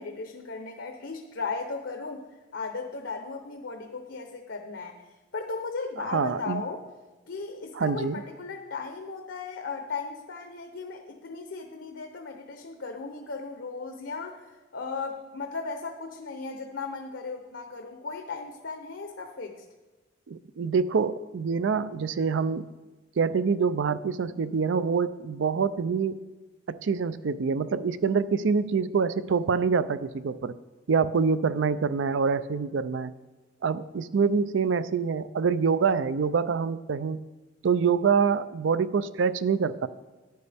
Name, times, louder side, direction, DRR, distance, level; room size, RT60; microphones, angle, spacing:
voice 1, 0.0-2.2 2.5-5.0 5.3-6.8 7.3-19.6, left 4 dB, 70° left, 5 dB, 0.8 m, -36 dB
voice 2, 6.0-6.6 7.7-8.2 20.3-22.7 23.2-26.2 26.7-30.5 30.9-33.1 33.6-37.2 37.6-39.9, right 5 dB, 75° right, 15 dB, 0.4 m, -26 dB
11.0 x 9.4 x 3.4 m, 1.2 s
head